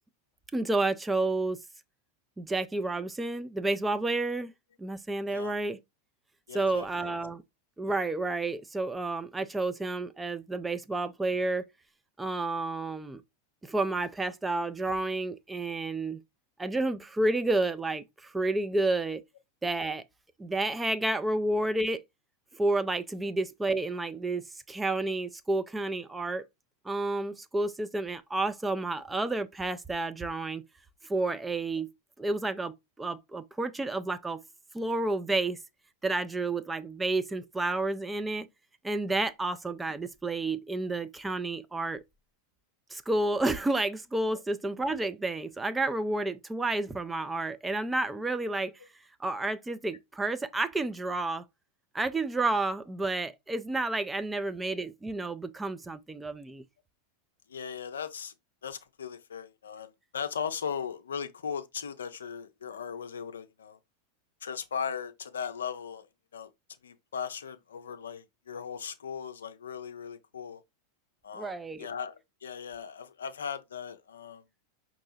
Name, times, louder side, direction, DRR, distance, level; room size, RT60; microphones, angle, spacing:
voice 1, 0.5-1.6 2.4-4.5 4.8-5.8 6.5-7.4 7.8-11.6 12.2-13.2 13.6-16.2 16.6-19.2 19.6-20.0 20.4-22.0 22.5-26.4 26.8-30.6 31.0-31.9 32.2-34.4 34.7-35.6 36.0-38.5 38.8-42.0 42.9-48.7 49.2-51.4 51.9-56.6 71.3-71.9, right 2 dB, 10° right, 0.4 m, -30 dB
voice 2, 6.5-7.1 57.5-58.3 58.6-63.8 64.4-66.1 66.3-66.5 66.8-70.6 71.2-74.4, left 7 dB, 65° left, 0.5 m, -38 dB
5.3 x 2.9 x 2.7 m
figure-of-eight pair, 90°, 0 cm